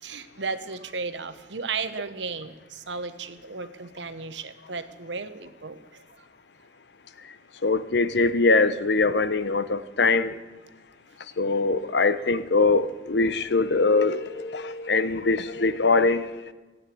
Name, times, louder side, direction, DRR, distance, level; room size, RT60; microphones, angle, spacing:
voice 1, 0.0-6.0, right 4 dB, 90° right, 11 dB, 1.0 m, -34 dB
voice 2, 7.6-10.3 11.4-16.5, left 3 dB, 75° left, 14 dB, 0.8 m, -22 dB
13.5 x 8.8 x 9.2 m, 1.2 s
head